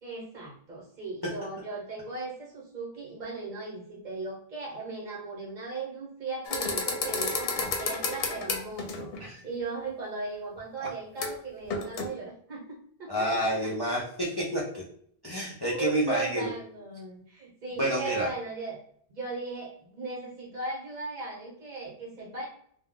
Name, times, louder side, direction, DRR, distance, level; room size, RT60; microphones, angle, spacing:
voice 1, 0.0-13.7 15.6-18.8 19.1-22.5, right 3 dB, 50° right, -2 dB, 0.9 m, -37 dB
sound 1, 6.5-9.2 11.2-11.4 11.7-12.1, left 4 dB, 70° left, 0.8 m, -31 dB
voice 2, 13.1-14.8 15.2-16.5 17.8-18.3, equal, 35° left, -5 dB, 0.4 m, -29 dB
2.2 x 2.1 x 3.5 m, 0.62 s
omnidirectional pair, 1.0 m